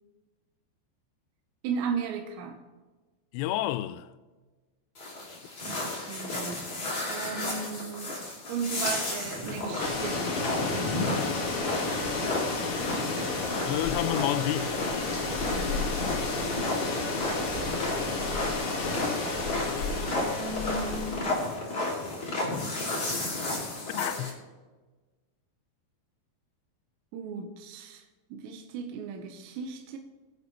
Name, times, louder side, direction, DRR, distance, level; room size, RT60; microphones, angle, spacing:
voice 1, 1.6-2.6 5.7-6.7 7.1-11.2 15.3-16.1 20.2-21.4 27.1-28.0 28.3-30.0, right 5 dB, 80° right, 3.0 m, -36 dB
voice 2, 3.3-4.1 13.6-15.1 23.9-24.4, left 14 dB, 85° left, 2.8 m, -30 dB
sound 1, 4.9-24.3, left 2 dB, 25° left, 2.5 m, -33 dB
sound 2, 9.8-21.5, left 3 dB, 65° left, 1.3 m, -32 dB
21.0 x 8.0 x 3.1 m
omnidirectional pair, 5.2 m